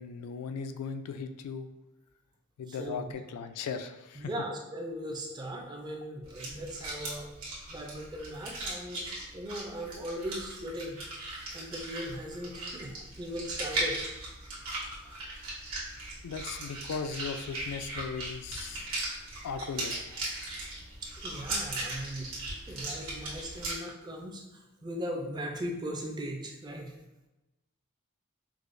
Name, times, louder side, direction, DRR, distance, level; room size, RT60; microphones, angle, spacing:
voice 1, 0.0-1.7 2.6-4.3 16.2-18.9 19.4-20.2, left 5 dB, 90° left, 8 dB, 0.3 m, -37 dB
voice 2, 2.7-3.1 4.2-7.3 7.7-9.1 9.3-11.0 11.5-14.0 21.0-27.0, equal, 20° right, 2 dB, 0.4 m, -39 dB
sound 1, 6.2-23.7, right 2 dB, 65° right, 1.1 m, -38 dB
4.7 x 2.0 x 2.5 m, 1.0 s
head